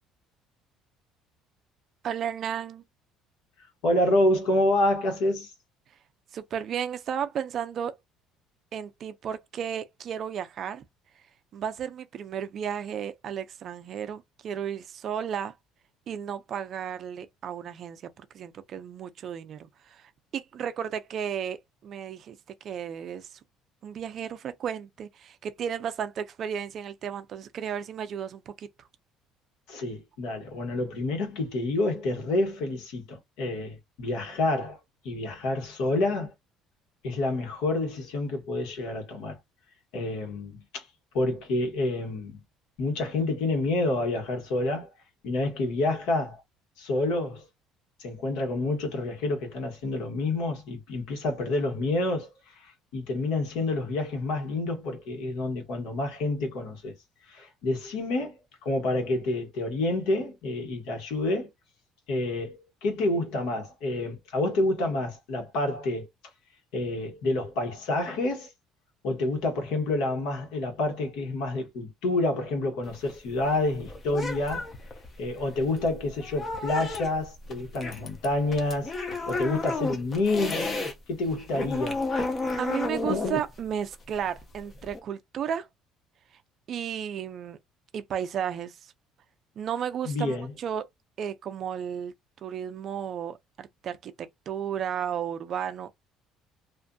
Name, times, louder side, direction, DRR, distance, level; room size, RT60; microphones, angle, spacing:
voice 1, 2.0-2.8 6.3-8.0 8.7-10.8 11.5-15.5 16.1-22.4 22.6-23.4 23.8-28.7 82.6-85.7 86.7-87.6 87.9-88.9 89.6-90.9 91.2-92.1 92.4-96.0, right 8 dB, 35° right, 0.3 m, -33 dB
voice 2, 3.8-5.5 29.7-34.8 35.0-36.3 37.0-39.4 39.9-40.8 41.1-42.4 42.8-44.9 45.2-46.4 46.8-47.5 48.0-56.9 57.3-58.3 58.6-61.5 62.1-66.1 66.7-68.5 69.0-74.7 75.2-78.9 79.3-80.7 81.1-82.0 90.0-90.5, left 2 dB, 70° left, 1.2 m, -28 dB
sound 1, 72.8-80.9 81.3-85.0, left 3 dB, 25° left, 0.5 m, -32 dB
2.6 x 2.4 x 2.2 m
cardioid pair, 175°, 0 cm